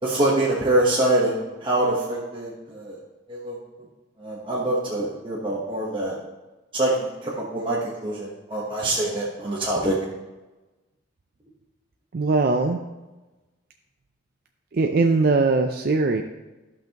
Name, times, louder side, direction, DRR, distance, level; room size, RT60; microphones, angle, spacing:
voice 1, 0.0-3.0 3.3-3.6 4.2-6.2 6.7-10.0, right 1 dB, 25° right, -5 dB, 1.1 m, -25 dB
voice 2, 12.1-12.8 14.7-16.2, right 3 dB, 50° right, 4 dB, 0.4 m, -20 dB
14.5 x 5.7 x 3.0 m, 1.1 s
head